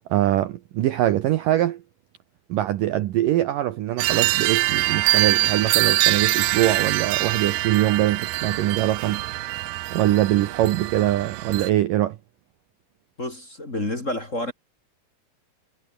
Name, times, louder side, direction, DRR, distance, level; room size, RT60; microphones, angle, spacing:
voice 1, 0.1-1.8 2.5-9.2 9.9-12.2, right 14 dB, 70° right, 2.2 m, -23 dB
sound 1, 4.0-11.7, right 18 dB, 90° right, 3.0 m, -24 dB
voice 2, 13.2-14.5, left 1 dB, 20° left, 2.8 m, -29 dB
omnidirectional pair, 4.8 m